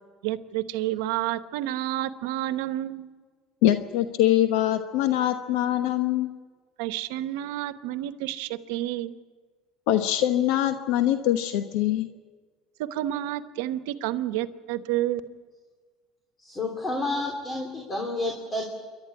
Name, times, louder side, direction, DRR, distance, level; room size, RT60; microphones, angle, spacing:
voice 1, 0.2-3.1 6.8-9.1 12.8-15.2, right 14 dB, 90° right, 11 dB, 1.0 m, -30 dB
voice 2, 3.6-6.3 9.9-12.1, left 12 dB, 85° left, 8 dB, 1.1 m, -23 dB
voice 3, 16.4-18.6, left 2 dB, 20° left, 2 dB, 3.2 m, -30 dB
28.5 x 12.0 x 9.8 m, 1.5 s
cardioid pair, 130°, 0 cm